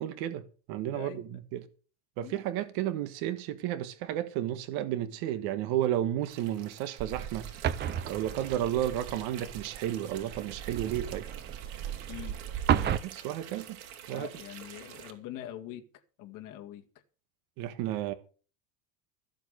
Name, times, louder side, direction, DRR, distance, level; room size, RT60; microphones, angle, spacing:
voice 1, 0.0-1.6 2.2-7.5 8.1-11.2 13.0-13.8 14.1-14.3 17.6-18.1, right 12 dB, 60° right, 1.5 m, -32 dB
voice 2, 0.9-1.2 2.2-2.4 12.1-12.3 12.7-13.0 14.1-15.8 16.2-16.8, left 12 dB, 50° left, 2.2 m, -43 dB
sound 1, 6.2-15.1, right 9 dB, 80° right, 3.6 m, -48 dB
sound 2, 7.0-13.0, right 10 dB, 25° right, 0.6 m, -33 dB
14.5 x 7.9 x 6.7 m
cardioid pair, 155°, 42 cm